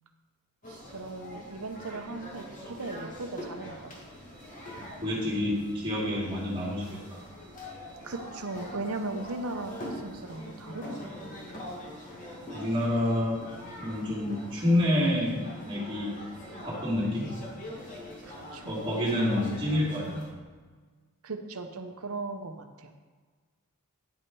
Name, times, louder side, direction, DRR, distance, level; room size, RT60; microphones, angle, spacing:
sound 1, 0.6-20.3, left 1 dB, 35° left, 1.8 m, -44 dB
voice 1, 0.7-4.0 8.0-11.6 18.2-18.7 21.2-23.0, right 3 dB, 70° right, 6 dB, 0.9 m, -38 dB
voice 2, 5.0-7.2 12.5-13.4 13.8-16.1 16.6-17.3 18.7-20.2, left 1 dB, 25° right, -4 dB, 2.6 m, -28 dB
9.7 x 6.1 x 4.7 m, 1.4 s
head